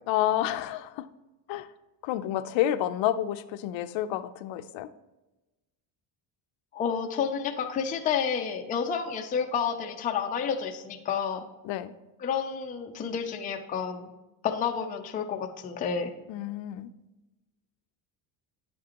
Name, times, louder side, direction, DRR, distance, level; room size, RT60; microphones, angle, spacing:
voice 1, 0.1-1.1 1.5-1.7 2.0-4.9 11.6-11.9 16.3-16.9, left 12 dB, 65° left, 12 dB, 0.6 m, -29 dB
voice 2, 6.7-11.4 12.2-14.1 14.4-16.1, left 7 dB, 20° left, 3 dB, 0.4 m, -30 dB
10.0 x 7.5 x 2.9 m, 1.0 s
cardioid pair, 165°, 48 cm